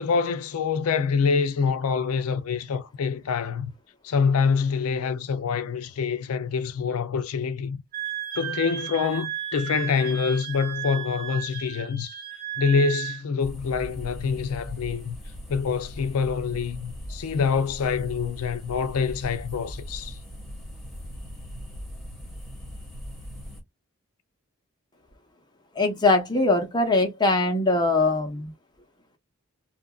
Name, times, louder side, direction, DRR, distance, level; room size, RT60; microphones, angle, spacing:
voice 1, 0.0-3.7 4.0-7.8 8.4-12.1 12.6-15.2 15.5-20.2, left 5 dB, 80° left, 0.4 m, -26 dB
Wind instrument woodwind instrument, 7.9-13.2, right 10 dB, 40° right, 0.8 m, -34 dB
sound 1, 13.4-23.6, equal, ahead, 1.1 m, -40 dB
voice 2, 25.7-28.5, left 2 dB, 20° left, 0.7 m, -22 dB
2.8 x 2.4 x 2.3 m
head